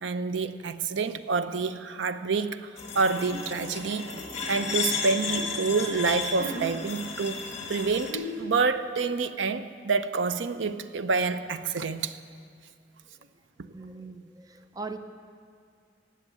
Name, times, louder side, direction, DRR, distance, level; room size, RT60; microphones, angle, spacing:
voice 1, 0.0-2.6 2.9-4.1 4.5-7.4 7.7-12.2, right 4 dB, 70° right, 12 dB, 0.5 m, -28 dB
sound 1, 2.8-8.1, left 4 dB, 35° left, 1.8 m, -34 dB
sound 2, 3.3-3.5 4.1-5.4 6.0-6.7 7.7-7.8 8.1-8.5, left 1 dB, 50° right, 3.0 m, -38 dB
voice 2, 13.6-15.0, right 3 dB, 20° right, 8 dB, 0.4 m, -40 dB
16.0 x 7.3 x 9.7 m, 2.2 s
head